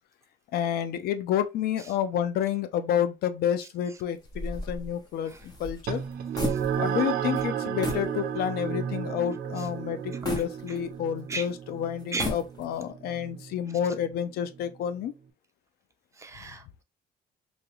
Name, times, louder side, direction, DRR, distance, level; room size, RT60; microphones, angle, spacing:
voice 1, 0.5-6.0 6.8-15.1, left 9 dB, 70° left, 0.5 m, -29 dB
sound 1, 4.2-7.1 7.3-7.5 7.8-8.1 8.6-8.7 10.2-11.2 12.0-12.9, left 1 dB, 25° left, 1.1 m, -35 dB
sound 2, 5.9-14.7, right 8 dB, 65° right, 0.5 m, -33 dB
voice 2, 10.1-10.8 11.3-11.5 12.1-12.3 16.2-16.8, right 3 dB, 15° right, 0.6 m, -37 dB
3.0 x 2.3 x 3.0 m
cardioid pair, 110°, 17 cm